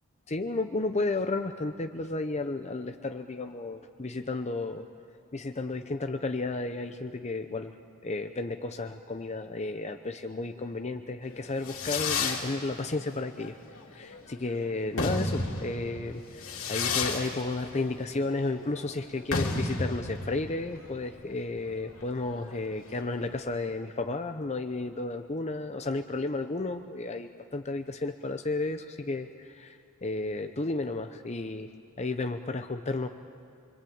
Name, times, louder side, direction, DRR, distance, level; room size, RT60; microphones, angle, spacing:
voice 1, 0.3-4.9 5.3-7.7 8.0-13.6 13.9-16.2 16.7-31.7 32.0-33.1, left 2 dB, 30° left, 7 dB, 0.8 m, -33 dB
Fireworks, 11.3-23.5, left 3 dB, 70° left, 3.0 m, -33 dB
25.5 x 25.0 x 8.7 m, 2.4 s
head